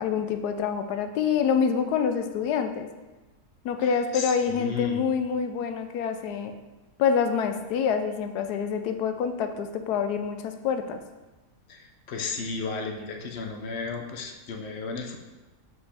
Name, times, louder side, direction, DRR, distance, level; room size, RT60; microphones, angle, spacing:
voice 1, 0.0-2.9 3.6-6.5 7.0-11.0, left 6 dB, 75° left, 8 dB, 1.1 m, -26 dB
voice 2, 3.8-5.1 11.7-15.2, left 4 dB, 60° left, 3 dB, 0.7 m, -34 dB
5.5 x 5.5 x 4.1 m, 1.2 s
omnidirectional pair, 1.7 m